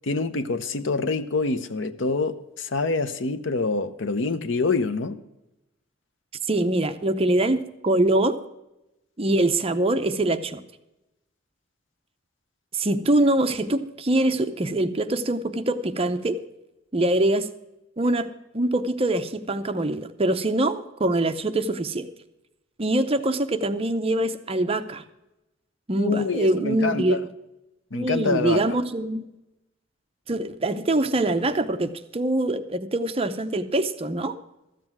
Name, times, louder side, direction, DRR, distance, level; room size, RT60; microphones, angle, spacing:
voice 1, 0.0-5.2 26.0-27.2 27.9-28.6, left 3 dB, 70° left, 13 dB, 0.8 m, -26 dB
voice 2, 6.5-8.4 9.2-10.6 12.7-16.4 16.9-17.5 18.0-18.3 18.5-22.1 22.8-25.0 25.9-27.2 27.9-29.2 30.3-34.4, right 1 dB, 30° right, 9 dB, 0.7 m, -24 dB
13.5 x 7.6 x 6.1 m, 0.94 s
head